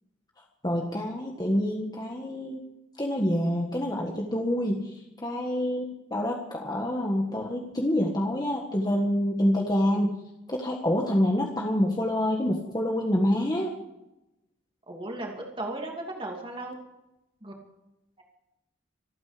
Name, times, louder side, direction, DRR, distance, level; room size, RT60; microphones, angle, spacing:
voice 1, 0.6-2.6 3.0-10.2 10.5-13.7, left 1 dB, 20° left, 0 dB, 1.6 m, -27 dB
voice 2, 14.9-16.7 17.4-17.5 18.2-18.3, right 2 dB, 25° right, 0 dB, 2.8 m, -36 dB
26.0 x 9.5 x 5.1 m, 0.92 s
head